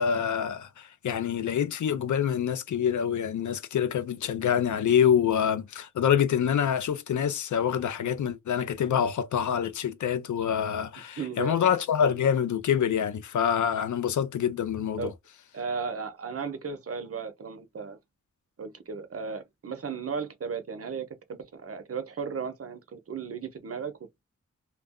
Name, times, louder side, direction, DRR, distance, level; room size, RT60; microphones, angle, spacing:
voice 1, 0.0-15.1, left 8 dB, 85° left, 0.5 m, -26 dB
voice 2, 11.2-11.7 15.0-15.1 15.5-18.0 18.6-23.9, right 5 dB, 50° right, 0.7 m, -35 dB
2.3 x 2.0 x 3.5 m
wide cardioid pair, 105°, 29 cm